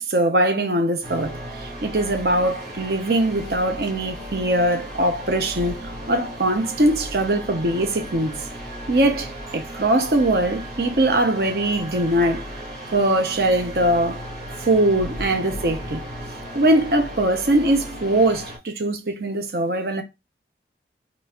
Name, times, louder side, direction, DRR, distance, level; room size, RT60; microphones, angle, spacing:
voice 1, 0.0-8.3 8.9-12.5 12.9-14.2 14.6-16.0 16.5-20.0, right 1 dB, 60° right, 0.8 m, -21 dB
sound 1, 1.0-18.6, equal, 80° right, 2.4 m, -35 dB
4.4 x 4.1 x 2.4 m
head